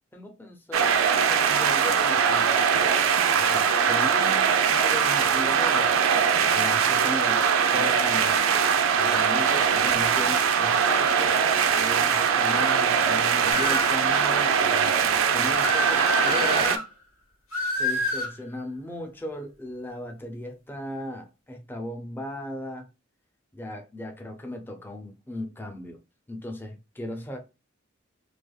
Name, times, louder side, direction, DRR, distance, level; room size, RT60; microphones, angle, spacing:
voice 1, 0.1-1.0 1.3-2.9 3.3-6.1 6.5-7.4 7.7-8.4 9.0-11.4 11.7-15.0 15.3-16.8 17.7-22.9 23.5-26.0 26.3-27.4, left 1 dB, 10° left, 0.4 m, -37 dB
sound 1, 0.7-16.8, right 7 dB, 80° right, 0.4 m, -22 dB
sound 2, 13.5-14.0 15.6-16.8 17.5-18.3, left 1 dB, 90° left, 1.1 m, -27 dB
3.2 x 2.2 x 2.2 m
head